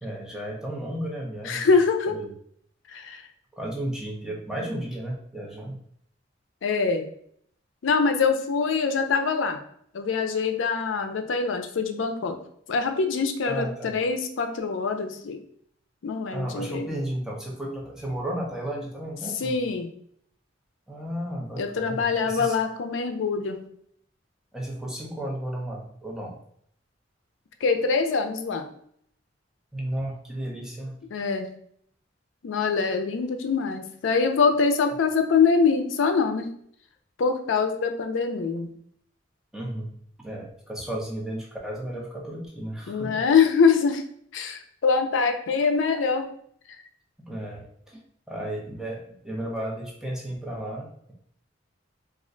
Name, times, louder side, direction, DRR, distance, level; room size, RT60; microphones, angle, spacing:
voice 1, 0.0-1.7 2.1-2.3 3.5-5.8 13.4-13.9 16.3-19.5 20.9-22.5 24.5-26.4 29.7-30.9 39.5-39.9 40.2-43.2 47.3-48.0 48.3-51.1, right 1 dB, 5° right, -2 dB, 0.5 m, -33 dB
voice 2, 1.4-2.2 2.9-3.2 6.6-7.1 7.8-9.6 9.9-12.4 12.7-15.4 16.0-16.9 19.4-19.9 21.6-23.6 27.6-28.6 31.1-31.5 32.4-36.5 37.2-38.7 42.9-44.0 44.3-46.3, left 5 dB, 80° left, 6 dB, 0.4 m, -24 dB
2.4 x 2.2 x 3.7 m, 0.66 s
head